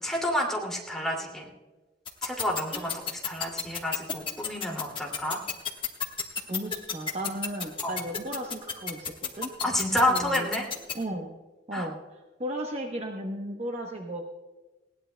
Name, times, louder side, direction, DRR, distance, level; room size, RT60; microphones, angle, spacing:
voice 1, 0.0-1.5 2.2-2.9 3.2-5.4 7.8-7.9 9.6-10.7 11.7-11.9, left 1 dB, ahead, -1 dB, 2.4 m, -29 dB
sound 1, 2.1-10.9, left 6 dB, 30° left, 1.3 m, -30 dB
voice 2, 6.5-9.5 10.1-10.5 10.9-11.3 11.7-14.2, right 1 dB, 35° right, 2 dB, 0.9 m, -35 dB
20.0 x 17.0 x 2.2 m, 1.2 s
head